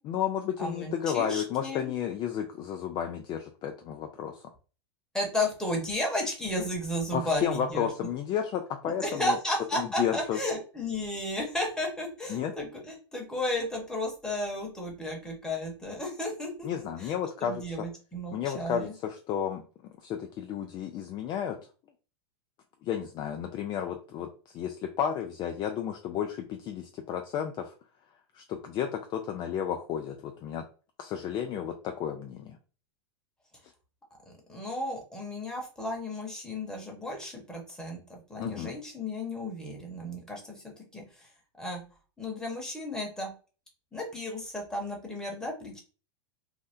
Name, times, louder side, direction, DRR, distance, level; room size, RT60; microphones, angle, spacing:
voice 1, 0.0-4.4 7.1-9.4 9.7-10.4 12.3-12.5 16.6-17.6 18.3-21.6 22.8-27.7 28.3-30.6 31.0-32.6 38.4-38.7, left 9 dB, 30° left, 5 dB, 0.3 m, -32 dB
voice 2, 0.6-1.9 5.1-7.9 9.0-16.7 17.0-17.1 17.4-18.9 34.3-41.3 41.6-41.8 42.2-43.3 43.9-45.8, left 1 dB, 5° left, -1 dB, 1.1 m, -33 dB
2.7 x 2.1 x 3.5 m, 0.36 s
hypercardioid pair, 120°, 15 cm